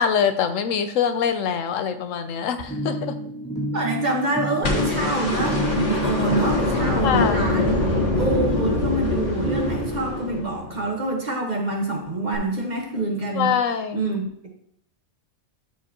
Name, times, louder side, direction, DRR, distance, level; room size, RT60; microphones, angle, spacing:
voice 1, 0.0-3.2 7.0-7.5 13.3-14.1, left 7 dB, 75° left, 9 dB, 1.0 m, -24 dB
sound 1, 2.7-10.9, right 1 dB, 5° left, 1.9 m, -31 dB
voice 2, 3.7-7.8 8.2-13.5 13.9-14.5, right 2 dB, 35° right, 1 dB, 1.3 m, -26 dB
sound 2, 4.6-10.8 12.3-12.4, left 2 dB, 60° left, 1.8 m, -24 dB
12.5 x 4.7 x 2.9 m, 0.69 s
omnidirectional pair, 1.4 m